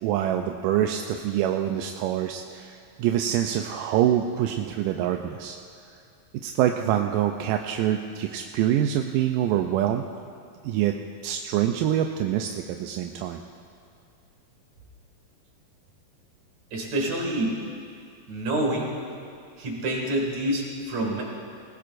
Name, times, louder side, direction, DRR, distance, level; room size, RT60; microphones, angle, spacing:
voice 1, 0.0-5.6 6.4-10.1 10.6-11.0 11.2-13.4, right 11 dB, 80° right, 4 dB, 2.0 m, -25 dB
voice 2, 16.7-17.6 18.3-19.0 19.6-21.2, right 1 dB, 50° right, -1 dB, 3.2 m, -27 dB
20.0 x 18.5 x 2.6 m, 2.3 s
omnidirectional pair, 4.2 m